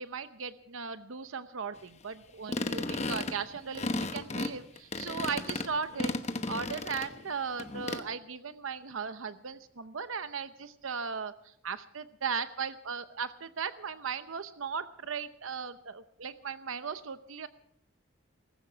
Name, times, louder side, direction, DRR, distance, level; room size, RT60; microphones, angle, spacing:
voice 1, 0.0-6.1 6.5-17.5, right 6 dB, 90° right, 12 dB, 0.8 m, -37 dB
sound 1, 2.5-7.3 7.6-8.0, left 2 dB, 35° left, 1.0 m, -34 dB
19.5 x 16.0 x 4.6 m, 0.68 s
head